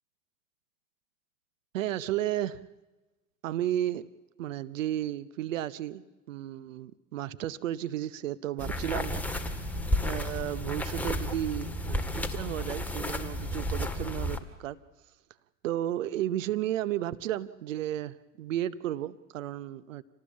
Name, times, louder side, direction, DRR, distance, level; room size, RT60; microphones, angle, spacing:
voice 1, 1.7-2.6 3.4-4.1 4.4-9.4 10.0-14.8 15.6-20.0, right 12 dB, 70° right, 16 dB, 0.9 m, -33 dB
sound 1, 8.6-14.4, left 1 dB, 5° left, 2.0 m, -32 dB
27.0 x 18.5 x 8.4 m, 1.1 s
hypercardioid pair, 95°, 39 cm